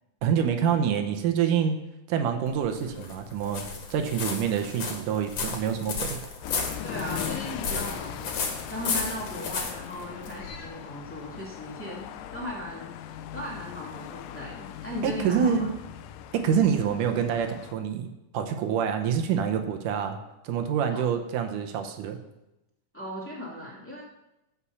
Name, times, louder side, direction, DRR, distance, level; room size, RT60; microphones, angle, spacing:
voice 1, 0.2-1.8 2.1-3.6 3.9-6.2 15.0-15.7 16.3-18.1 18.3-20.2 20.4-22.2, right 8 dB, 80° right, 6 dB, 2.4 m, -26 dB
sound 1, 2.5-10.6, left 4 dB, 55° left, 2.5 m, -34 dB
sound 2, 6.4-17.7, left 11 dB, 90° left, 2.2 m, -40 dB
voice 2, 6.8-15.7 20.9-21.0 22.9-24.0, equal, 5° left, -4 dB, 2.2 m, -37 dB
14.5 x 5.6 x 7.1 m, 0.95 s
omnidirectional pair, 3.7 m